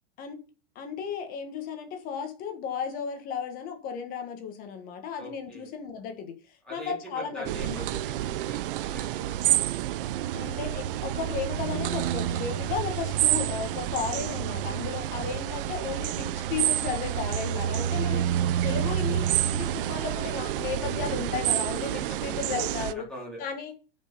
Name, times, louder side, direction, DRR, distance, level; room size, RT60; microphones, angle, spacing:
voice 1, 0.7-7.9 10.3-18.2 18.6-23.1 23.4-23.7, left 7 dB, 30° left, 1.6 m, -34 dB
voice 2, 5.2-5.7 6.6-9.6 17.6-18.5 21.9-22.7 23.1-23.4, right 1 dB, 5° left, 4.2 m, -43 dB
sound 1, 7.4-22.9, right 12 dB, 60° right, 0.7 m, -28 dB
8.8 x 5.6 x 5.3 m
supercardioid pair, 165°, 31 cm